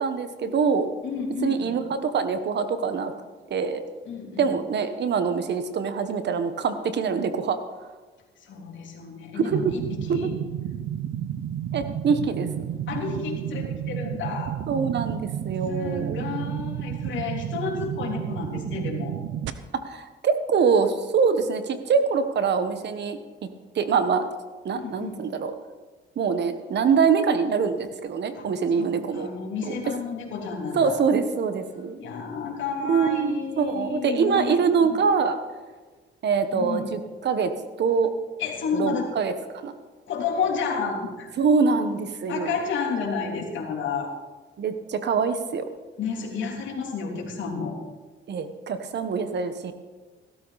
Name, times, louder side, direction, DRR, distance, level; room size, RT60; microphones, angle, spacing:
voice 1, 0.0-0.9 1.4-3.1 3.5-3.8 4.4-7.6 10.1-10.3 11.7-12.5 14.7-16.2 19.7-23.2 23.7-24.3 24.6-25.5 26.2-29.3 29.6-29.7 30.7-32.0 32.9-35.4 36.2-37.5 37.8-38.1 38.7-39.7 41.4-42.6 44.6-45.6 48.3-49.7, right 5 dB, 60° right, 9 dB, 1.3 m, -24 dB
voice 2, 1.0-1.7 4.0-4.5 8.4-10.4 12.9-14.5 15.7-19.1 24.7-25.2 28.3-28.5 28.8-31.0 32.0-34.6 34.9-35.0 36.5-36.9 38.4-39.1 40.1-41.3 42.3-44.1 46.0-47.8, left 5 dB, 70° left, 0 dB, 3.3 m, -31 dB
sound 1, 9.5-19.5, right 10 dB, 75° right, 0.9 m, -31 dB
16.0 x 13.0 x 4.2 m, 1.3 s
cardioid pair, 90°, 20 cm